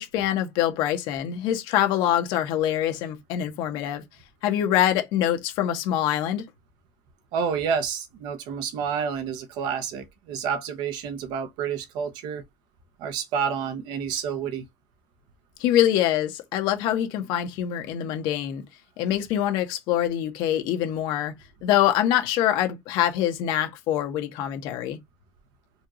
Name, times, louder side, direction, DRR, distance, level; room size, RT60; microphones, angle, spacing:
voice 1, 0.0-4.0 4.4-6.4 15.6-18.6 19.0-21.3 21.6-25.0, left 11 dB, 80° left, 1.1 m, -24 dB
voice 2, 7.3-12.4 13.0-14.6, right 7 dB, 75° right, 0.9 m, -29 dB
4.2 x 2.5 x 3.0 m
cardioid pair, 155°, 8 cm